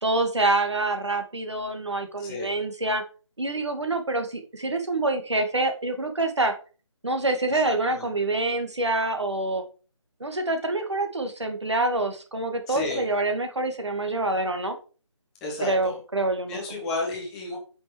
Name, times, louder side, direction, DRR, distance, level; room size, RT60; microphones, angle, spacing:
voice 1, 0.0-3.0 3.4-6.5 7.0-9.6 10.2-14.8 15.6-16.6, right 2 dB, 60° right, 6 dB, 2.2 m, -26 dB
voice 2, 2.2-2.5 7.6-8.1 12.7-13.1 15.4-16.0 16.5-17.6, left 3 dB, ahead, -2 dB, 0.5 m, -32 dB
9.0 x 5.7 x 4.7 m, 0.36 s
figure-of-eight pair, 155°, 16 cm